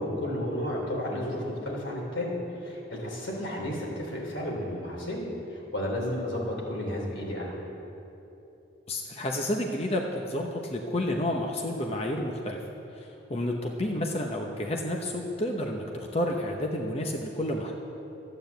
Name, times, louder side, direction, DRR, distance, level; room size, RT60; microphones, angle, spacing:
voice 1, 0.0-7.6, left 1 dB, 85° left, -2 dB, 3.3 m, -32 dB
voice 2, 8.9-12.6 12.9-15.8 16.1-17.7, left 1 dB, 35° left, 1 dB, 0.8 m, -30 dB
12.5 x 8.8 x 8.0 m, 3.0 s
head